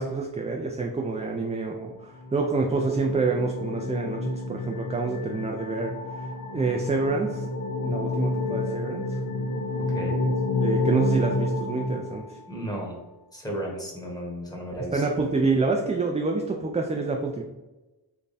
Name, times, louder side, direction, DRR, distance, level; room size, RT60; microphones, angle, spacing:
voice 1, 0.0-7.5 7.8-9.2 10.2-10.3 10.6-12.4 14.9-17.4, right 3 dB, 20° right, 2 dB, 0.3 m, -27 dB
sound 1, 2.0-12.7, left 2 dB, 60° left, 0.5 m, -29 dB
voice 2, 12.5-13.0 13.3-15.1, equal, 10° left, -2 dB, 1.1 m, -34 dB
3.4 x 2.2 x 3.9 m, 1.1 s
wide cardioid pair, 65°, 39 cm